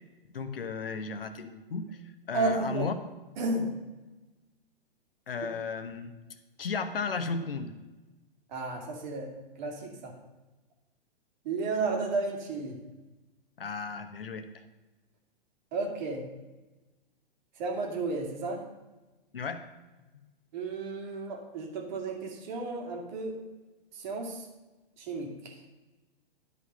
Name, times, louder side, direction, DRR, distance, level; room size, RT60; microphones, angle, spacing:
voice 1, 0.3-2.0 2.3-2.9 5.3-6.1 6.6-7.7 13.6-14.6 19.3-19.6, left 5 dB, 75° left, 9 dB, 1.1 m, -34 dB
voice 2, 2.3-2.9 3.4-3.7 8.5-9.3 9.6-10.1 11.4-12.8 15.7-16.2 17.6-18.6 20.5-23.4 23.9-24.5 25.0-25.3, right 3 dB, 50° right, 2 dB, 2.3 m, -32 dB
11.0 x 5.2 x 5.6 m, 1.1 s
figure-of-eight pair, 115°, 29 cm